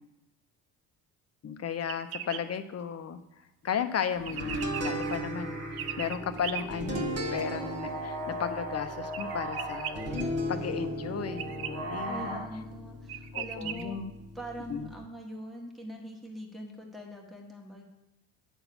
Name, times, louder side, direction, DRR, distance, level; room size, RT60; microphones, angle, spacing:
voice 1, 1.4-3.2 3.6-12.4 13.3-14.1 14.7-14.9, left 7 dB, 35° left, 10 dB, 0.8 m, -35 dB
sound 1, 1.8-2.4 4.0-5.2 5.8-6.6 9.1-10.2 11.4-11.7 12.7-12.8 13.1-13.8, right 10 dB, 55° right, 0.7 m, -38 dB
sound 2, 4.1-12.4, right 1 dB, 85° right, 2.5 m, -39 dB
sound 3, 4.4-15.0, equal, 35° right, 1.5 m, -37 dB
voice 2, 12.1-14.0 14.3-17.8, equal, ahead, 0 dB, 1.7 m, -42 dB
9.0 x 3.9 x 7.0 m, 0.92 s
hypercardioid pair, 65°, 45 cm